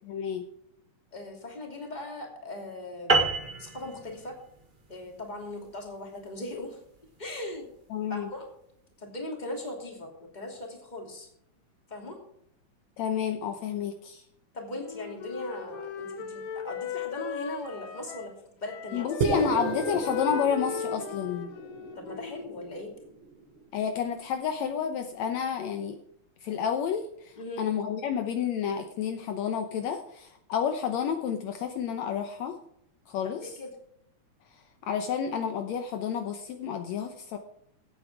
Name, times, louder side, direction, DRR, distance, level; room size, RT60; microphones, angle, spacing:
voice 1, 0.1-0.4 7.9-8.3 13.0-14.2 18.9-21.5 23.7-26.0 26.4-32.6 33.1-33.6 34.8-37.4, left 7 dB, 70° left, 7 dB, 2.0 m, -30 dB
voice 2, 1.1-3.2 3.6-4.4 4.9-6.8 7.2-7.7 8.1-8.5 9.0-11.3 11.9-12.2 14.5-18.3 18.6-19.1 21.9-22.9 27.4-27.6 33.2-33.7, left 2 dB, 15° left, 1 dB, 2.6 m, -39 dB
sound 1, 3.1-7.8, right 3 dB, 65° right, 0.4 m, -30 dB
Wind instrument woodwind instrument, 14.7-18.4 18.6-22.6, left 7 dB, 90° left, 3.0 m, -38 dB
sound 2, 19.2-23.6, right 4 dB, 50° right, 1.9 m, -33 dB
16.0 x 8.6 x 4.8 m, 0.71 s
omnidirectional pair, 3.5 m